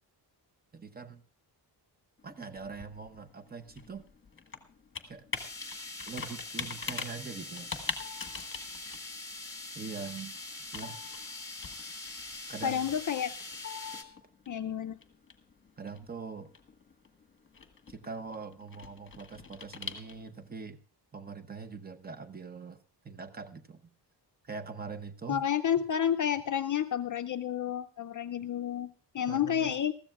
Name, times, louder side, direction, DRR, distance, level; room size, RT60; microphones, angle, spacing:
voice 1, 0.7-1.2 2.2-4.0 5.1-5.2 6.1-7.7 9.7-10.3 10.7-11.0 12.5-12.9 15.8-16.5 17.9-20.8 21.1-22.8 23.0-23.9 24.4-25.4 29.3-29.7, right 5 dB, 20° right, 10 dB, 0.8 m, -42 dB
Computer keyboard, 2.2-20.5, left 5 dB, 30° left, 1.3 m, -44 dB
sound 1, 5.3-14.0, left 2 dB, 10° left, 1.8 m, -43 dB
voice 2, 12.6-13.3 14.5-15.0 25.3-29.9, left 9 dB, 45° left, 8 dB, 0.5 m, -30 dB
20.5 x 14.5 x 2.3 m, 0.41 s
wide cardioid pair, 170°, 42 cm